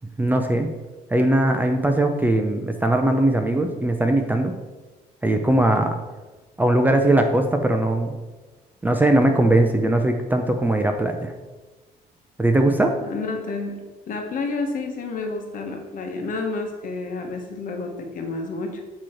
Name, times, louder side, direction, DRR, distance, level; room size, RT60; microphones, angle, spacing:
voice 1, 0.2-0.7 1.1-4.5 5.2-6.0 6.6-8.2 8.8-11.3 12.4-12.9, right 1 dB, 10° right, 5 dB, 0.5 m, -20 dB
voice 2, 13.0-18.8, left 3 dB, 50° left, 3 dB, 1.2 m, -30 dB
8.7 x 3.1 x 4.3 m, 1.2 s
cardioid pair, 110°, 17 cm